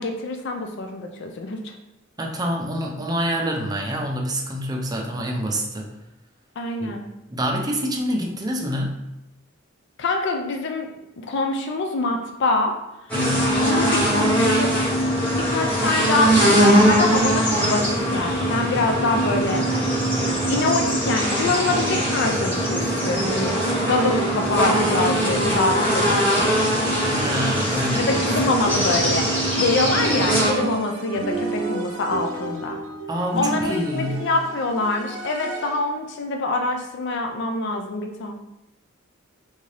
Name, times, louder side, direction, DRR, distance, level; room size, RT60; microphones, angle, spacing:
voice 1, 0.0-1.7 6.6-7.0 10.0-10.9 11.3-12.7 13.6-14.7 15.3-19.6 20.2-23.5 23.9-26.7 28.0-32.8 33.4-38.4, left 3 dB, 60° left, 3 dB, 0.4 m, -25 dB
voice 2, 2.2-5.9 6.8-6.9 7.3-9.0 13.1-13.5 27.0-28.2 33.1-34.3, equal, 20° right, 0 dB, 0.5 m, -26 dB
sound 1, 13.1-30.5, right 1 dB, 10° left, 1.3 m, -21 dB
sound 2, 29.9-36.0, right 3 dB, 75° right, 0.7 m, -31 dB
3.6 x 2.6 x 3.2 m, 0.91 s
head